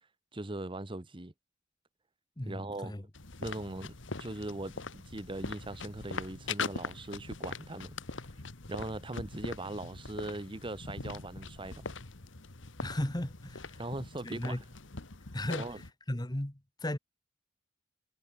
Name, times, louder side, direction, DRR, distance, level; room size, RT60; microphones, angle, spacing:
voice 1, 0.3-1.3 2.5-2.9 3.4-7.9 8.7-11.9 13.8-14.6 15.6-15.8, right 2 dB, 25° right, 1.1 m, -40 dB
voice 2, 2.4-3.0 12.8-13.8 14.2-14.6 15.3-17.0, left 1 dB, 20° left, 1.4 m, -36 dB
sound 1, 3.1-15.9, left 4 dB, 75° left, 1.8 m, -42 dB
head